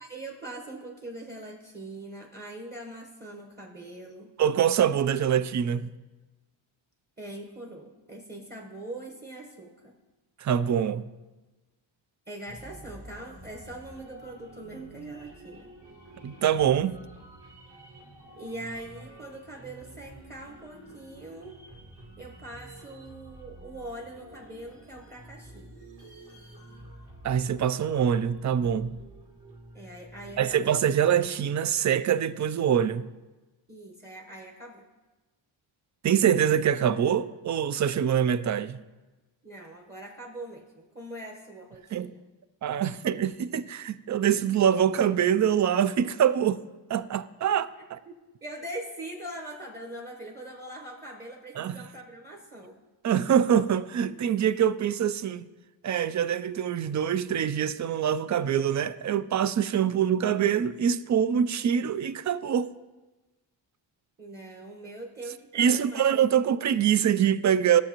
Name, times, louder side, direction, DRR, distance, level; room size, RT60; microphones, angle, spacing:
voice 1, 0.0-4.3 7.2-9.9 12.3-15.7 18.4-21.6 22.2-25.7 29.7-30.7 33.7-34.8 39.4-42.2 48.1-48.2 48.4-52.8 64.2-66.0, right 1 dB, 20° right, 1.1 m, -42 dB
voice 2, 4.4-5.9 10.4-11.0 16.2-17.0 27.2-29.0 30.4-33.1 36.0-38.8 41.9-42.1 42.6-46.6 46.9-48.0 51.6-51.8 53.0-55.5 55.8-62.7 65.5-67.8, right 9 dB, 40° right, 0.4 m, -24 dB
sound 1, 12.5-31.3, right 1 dB, 55° right, 2.3 m, -49 dB
12.5 x 6.7 x 2.9 m
cardioid pair, 65°, 48 cm